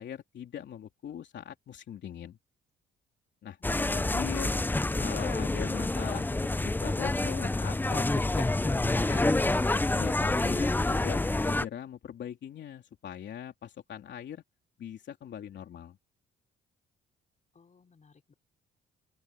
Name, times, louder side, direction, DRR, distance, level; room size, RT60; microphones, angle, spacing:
voice 1, 0.0-2.4 3.4-3.6 3.9-4.6 5.0-6.3 6.6-8.1 8.3-9.4 10.0-14.4 14.8-16.0, left 9 dB, 65° left, 3.2 m, -41 dB
sound 1, 3.6-11.7, left 2 dB, 10° left, 0.6 m, -28 dB
voice 2, 17.5-18.3, left 5 dB, 35° left, 5.3 m, -62 dB
open air
cardioid pair, 90°, 20 cm